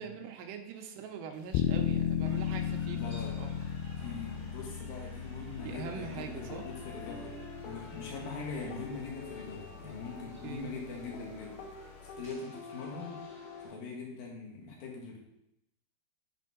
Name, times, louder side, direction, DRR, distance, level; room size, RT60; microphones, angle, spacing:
voice 1, 0.0-3.6 5.6-6.7 10.4-10.7, right 6 dB, 85° right, 4 dB, 2.9 m, -43 dB
sound 1, 1.5-12.3, left 9 dB, 85° left, 2.3 m, -37 dB
sound 2, 2.2-13.7, left 1 dB, 20° left, 1.9 m, -55 dB
voice 2, 2.9-3.4 4.0-13.2 13.6-15.2, left 4 dB, 55° left, -2 dB, 2.7 m, -42 dB
sound 3, 5.6-13.7, left 4 dB, 70° left, 2.6 m, -48 dB
7.7 x 5.3 x 4.9 m, 0.82 s
omnidirectional pair, 5.0 m